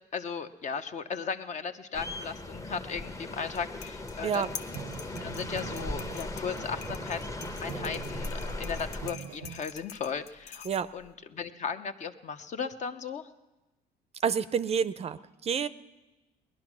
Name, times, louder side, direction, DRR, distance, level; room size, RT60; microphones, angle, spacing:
voice 1, 0.1-4.5 5.2-7.3 7.6-10.7 10.9-13.3, left 6 dB, 45° left, 9 dB, 0.9 m, -36 dB
sound 1, 1.9-9.1, left 2 dB, 20° left, 0.9 m, -38 dB
sound 2, 3.4-11.1, left 8 dB, 80° left, 0.9 m, -47 dB
sound 3, 4.2-9.6, right 10 dB, 80° right, 0.6 m, -44 dB
voice 2, 14.2-15.7, right 7 dB, 40° right, 15 dB, 0.5 m, -28 dB
19.5 x 11.0 x 6.1 m, 1.1 s
cardioid pair, 110°, 17 cm